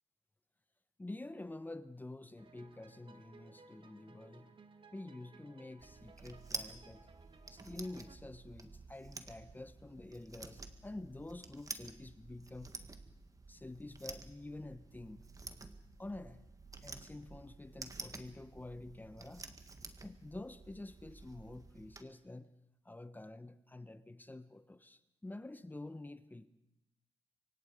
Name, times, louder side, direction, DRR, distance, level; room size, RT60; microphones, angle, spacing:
voice 1, 1.0-4.6 4.9-7.1 7.5-12.8 13.5-15.2 16.0-16.5 16.8-19.5 20.0-22.5 22.8-26.5, left 2 dB, 15° left, 1.1 m, -48 dB
sound 1, 2.4-8.2, right 4 dB, 45° right, 2.1 m, -61 dB
sound 2, 5.8-22.0, right 3 dB, 30° right, 1.8 m, -50 dB
25.5 x 24.0 x 5.2 m
cardioid pair, 80°, 11 cm